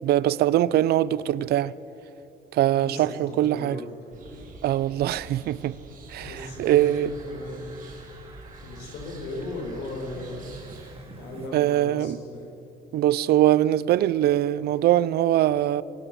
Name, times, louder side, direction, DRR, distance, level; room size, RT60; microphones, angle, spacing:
voice 1, 0.0-1.7 2.5-3.8 4.6-5.8 6.1-7.1 11.5-12.2 12.9-15.8, right 13 dB, 70° right, 0.7 m, -22 dB
voice 2, 2.7-4.4 5.0-5.1 6.2-7.6 8.6-10.5 11.0-12.5, left 2 dB, 80° left, 7.0 m, -37 dB
sound 1, 4.1-10.9, right 3 dB, 55° right, 5.8 m, -46 dB
Fowl, 6.2-11.5, right 4 dB, 35° right, 5.3 m, -49 dB
26.0 x 18.5 x 7.7 m
cardioid pair, 110°, 17 cm